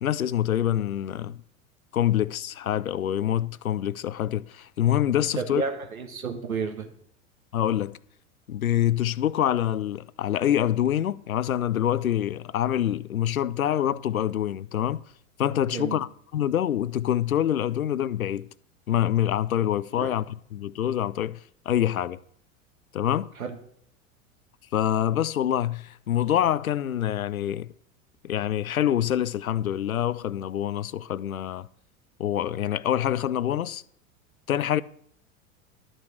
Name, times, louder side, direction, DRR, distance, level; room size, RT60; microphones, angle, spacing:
voice 1, 0.0-1.4 1.9-5.6 7.5-8.0 8.5-15.0 15.4-16.1 16.3-18.5 18.9-20.2 20.5-21.4 21.7-22.2 22.9-23.3 24.7-27.7 28.2-31.7 32.2-33.8 34.5-34.8, left 11 dB, 85° left, 0.5 m, -25 dB
voice 2, 5.3-6.9 15.7-16.1 20.0-20.1 23.3-23.6, right 5 dB, 85° right, 1.6 m, -31 dB
11.0 x 6.2 x 6.3 m
figure-of-eight pair, 85°, 41 cm